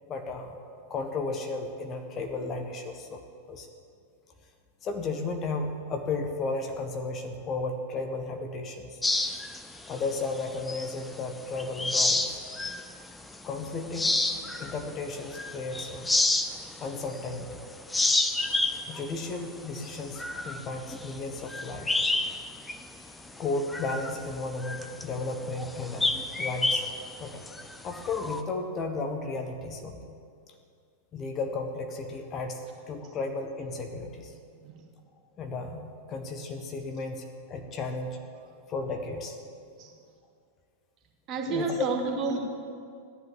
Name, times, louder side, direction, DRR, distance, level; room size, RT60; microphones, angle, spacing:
voice 1, 0.1-0.5 0.9-3.2 3.5-3.7 4.8-9.0 9.9-12.4 13.4-14.1 14.6-16.1 16.8-17.6 18.9-22.0 23.4-26.8 27.2-27.4 27.8-30.0 31.1-34.3 35.4-38.2 38.7-39.4 41.5-41.8, left 3 dB, 30° left, 5 dB, 1.4 m, -34 dB
sound 1, 9.0-11.2 11.6-12.9 13.3-13.5 13.9-17.5 17.8-22.4 22.7-22.8 23.3-28.4, left 2 dB, 10° left, 0.9 m, -29 dB
voice 2, 41.3-42.4, right 4 dB, 35° right, 1 dB, 2.5 m, -30 dB
15.0 x 10.5 x 7.8 m, 2.3 s
figure-of-eight pair, 90°, 0 cm